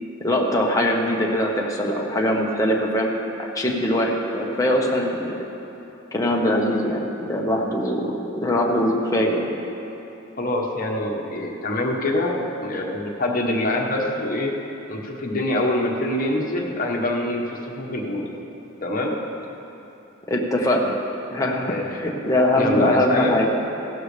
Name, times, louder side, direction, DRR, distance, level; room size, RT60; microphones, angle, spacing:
voice 1, 0.2-5.5 6.1-8.1 8.4-9.5 20.3-21.0 21.3-23.5, left 1 dB, 15° left, -1 dB, 1.2 m, -22 dB
voice 2, 10.4-14.5 14.9-18.3 18.8-19.2 21.7-22.1 22.6-23.4, left 1 dB, 45° left, -1 dB, 1.4 m, -25 dB
16.0 x 12.0 x 3.4 m, 2.9 s
head